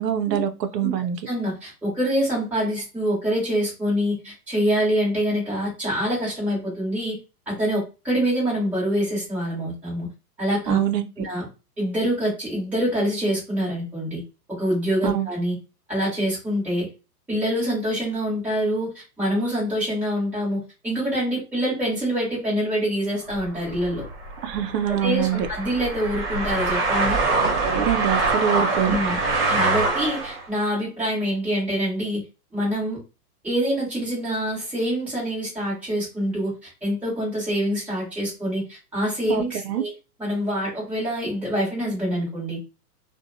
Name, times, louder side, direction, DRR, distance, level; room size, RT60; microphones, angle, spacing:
voice 1, 0.0-1.2 10.7-11.1 15.0-15.3 24.4-25.5 27.6-29.0 39.3-39.8, right 10 dB, 85° right, 8 dB, 0.6 m, -24 dB
voice 2, 1.3-7.2 7.5-10.1 10.4-10.8 11.2-11.5 11.8-14.2 14.5-15.6 15.9-16.9 17.3-24.0 24.9-27.2 28.9-29.2 29.5-32.2 32.5-33.0 33.4-39.9 40.2-42.6, equal, 5° right, -8 dB, 1.0 m, -25 dB
sound 1, 23.3-30.4, right 3 dB, 40° right, 1.0 m, -24 dB
2.6 x 2.2 x 2.6 m, 0.29 s
hypercardioid pair, 150°, 48 cm